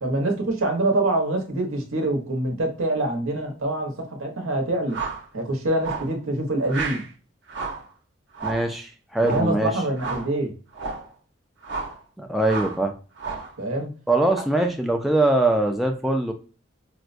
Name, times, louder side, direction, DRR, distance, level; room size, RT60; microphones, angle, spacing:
voice 1, 0.0-5.0 5.3-7.0 9.2-10.5 13.6-13.9, right 2 dB, 85° right, 3 dB, 0.9 m, -25 dB
sound 1, 4.9-5.3 5.8-6.1 6.7-7.1 7.5-7.9 8.3-8.7 9.2-9.5 10.0-10.3 10.7-11.1 11.6-12.0 12.4-12.8 13.2-13.5, right 4 dB, 60° right, 0.8 m, -32 dB
voice 2, 8.4-9.7 12.2-12.9 14.1-16.3, right 2 dB, ahead, 2 dB, 0.3 m, -22 dB
4.5 x 2.1 x 2.4 m, 0.37 s
head